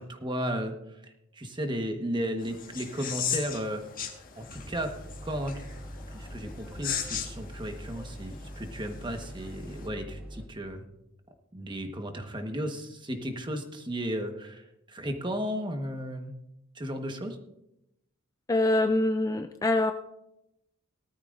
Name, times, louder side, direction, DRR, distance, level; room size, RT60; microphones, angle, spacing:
voice 1, 0.0-3.8 4.4-4.9 5.2-5.7 6.1-10.8 11.5-16.3 16.7-17.4, equal, 25° right, 5 dB, 1.3 m, -34 dB
sound 1, 2.4-9.9, left 8 dB, 45° left, 1.6 m, -38 dB
sound 2, 4.5-10.5, equal, 5° right, 2.2 m, -43 dB
voice 2, 18.5-19.9, left 2 dB, 15° left, 7 dB, 0.4 m, -24 dB
18.5 x 13.0 x 2.6 m, 0.86 s
head